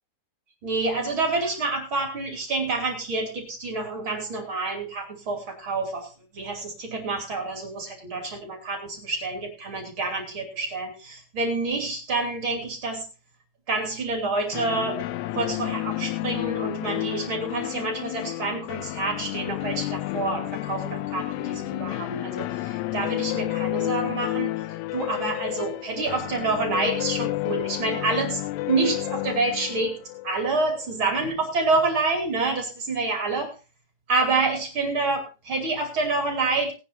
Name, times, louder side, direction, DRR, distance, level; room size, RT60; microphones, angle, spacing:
voice 1, 0.6-6.1 6.3-13.1 13.7-15.1 15.3-24.5 24.9-28.4 28.7-30.0 30.2-33.5 34.1-36.7, right 3 dB, 35° right, 4 dB, 3.1 m, -27 dB
sound 1, 14.5-31.3, left 18 dB, 80° left, 2.6 m, -31 dB
19.5 x 10.0 x 2.8 m, 0.30 s
omnidirectional pair, 5.0 m